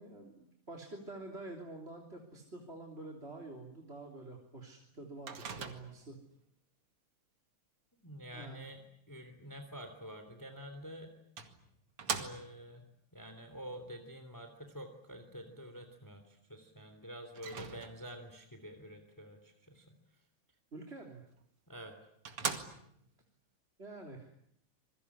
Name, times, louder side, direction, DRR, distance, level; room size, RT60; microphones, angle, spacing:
voice 1, 0.0-6.2 8.3-8.7 20.7-21.2 23.8-24.3, right 2 dB, 25° right, 1 dB, 3.5 m, -48 dB
Microwave oven, 5.3-6.2 10.5-10.6 11.4-12.7 17.3-18.2 21.4-21.5 21.9-22.0 22.2-23.1, right 6 dB, 85° right, 3.1 m, -40 dB
voice 2, 8.0-8.8 9.1-11.1 12.2-12.8 13.1-20.0 21.7-22.0, equal, 10° left, 7 dB, 3.0 m, -48 dB
27.0 x 22.0 x 9.9 m, 0.71 s
omnidirectional pair, 2.4 m